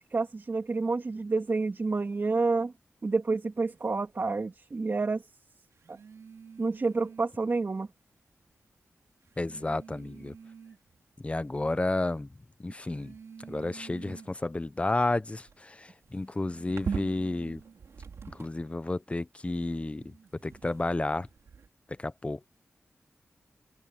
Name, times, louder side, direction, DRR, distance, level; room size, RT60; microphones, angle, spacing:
voice 1, 0.1-2.7 3.0-5.2 5.9-6.0 6.6-7.9, right 3 dB, 50° right, 2.7 m, -29 dB
sound 1, 3.7-4.0 5.7-7.5 8.5-8.6 9.2-11.0 11.5-12.0 12.7-18.8 19.5-21.7, right 6 dB, 80° right, 6.1 m, -44 dB
voice 2, 9.4-10.3 11.2-12.3 12.6-13.1 13.5-15.7 16.1-17.6 18.4-20.0 20.4-21.3 22.0-22.5, left 2 dB, 25° left, 1.0 m, -31 dB
cardioid pair, 55°, 5 cm